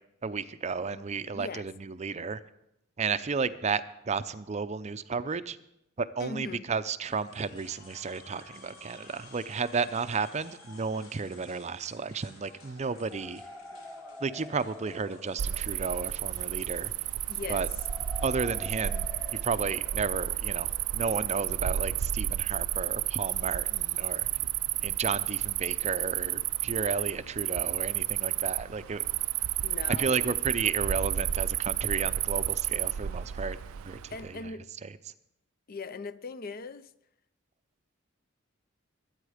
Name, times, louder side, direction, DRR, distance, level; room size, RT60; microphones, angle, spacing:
voice 1, 0.2-2.4 3.0-5.6 6.0-13.4 14.2-16.9 17.5-17.7 18.2-24.3 24.8-29.0 30.0-34.5 34.8-35.0, right 5 dB, 35° right, 0.5 m, -33 dB
voice 2, 1.3-1.7 6.2-6.6 17.3-17.6 29.6-30.3 34.1-34.7 35.7-36.9, left 4 dB, 45° left, 0.5 m, -39 dB
sound 1, 7.1-19.7, left 2 dB, 80° left, 4.3 m, -54 dB
sound 2, 13.0-22.7, left 2 dB, 5° left, 1.5 m, -49 dB
Cricket, 15.4-34.3, right 12 dB, 90° right, 0.4 m, -31 dB
22.0 x 9.0 x 5.0 m
head